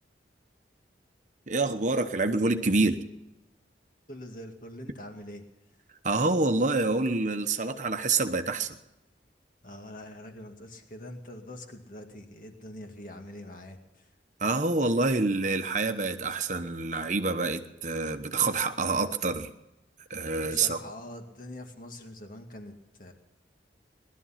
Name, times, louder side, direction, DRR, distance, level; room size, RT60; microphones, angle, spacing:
voice 1, 1.5-3.0 6.0-8.8 14.4-19.5 20.1-20.8, right 3 dB, 45° right, 1.0 m, -27 dB
voice 2, 4.1-5.4 9.6-14.1 20.4-23.1, left 1 dB, 50° left, 2.1 m, -44 dB
20.0 x 12.5 x 5.8 m
head